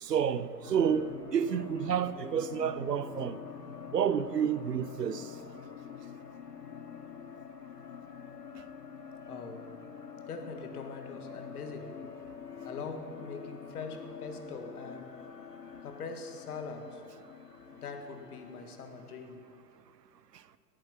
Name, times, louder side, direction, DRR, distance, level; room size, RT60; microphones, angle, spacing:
voice 1, 0.0-3.4 3.9-5.2, right 8 dB, 80° right, 0.8 m, -30 dB
sound 1, 0.6-19.6, left 7 dB, 90° left, 0.7 m, -46 dB
voice 2, 9.2-9.7 10.3-12.0 12.6-15.2 15.8-17.0 17.7-19.4, left 4 dB, 65° left, 1.8 m, -42 dB
18.5 x 8.8 x 5.8 m
figure-of-eight pair, 100°, 47 cm